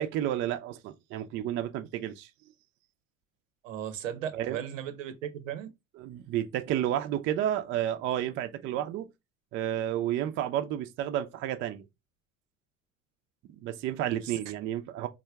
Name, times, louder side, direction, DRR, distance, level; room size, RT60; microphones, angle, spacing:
voice 1, 0.0-2.3 4.3-4.6 5.9-9.1 9.5-11.8 13.6-15.1, right 11 dB, 30° right, 0.4 m, -31 dB
voice 2, 3.6-5.7 14.2-14.3, right 9 dB, 70° right, 0.7 m, -36 dB
3.4 x 2.1 x 3.3 m
figure-of-eight pair, 65°, 40 cm